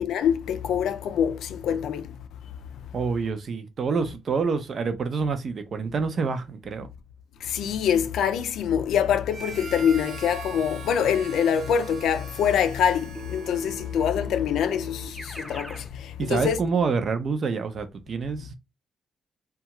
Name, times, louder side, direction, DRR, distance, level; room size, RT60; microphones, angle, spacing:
voice 1, 0.0-2.0 7.5-15.8 16.3-16.6, left 8 dB, 85° left, 0.4 m, -24 dB
voice 2, 2.9-6.9 16.2-18.6, right 5 dB, 50° right, 0.5 m, -27 dB
Harmonica, 9.3-14.3, right 5 dB, 80° right, 0.9 m, -42 dB
Keyboard (musical), 13.2-15.9, left 1 dB, 5° right, 0.7 m, -39 dB
2.7 x 2.3 x 2.9 m
cardioid pair, 115°, 0 cm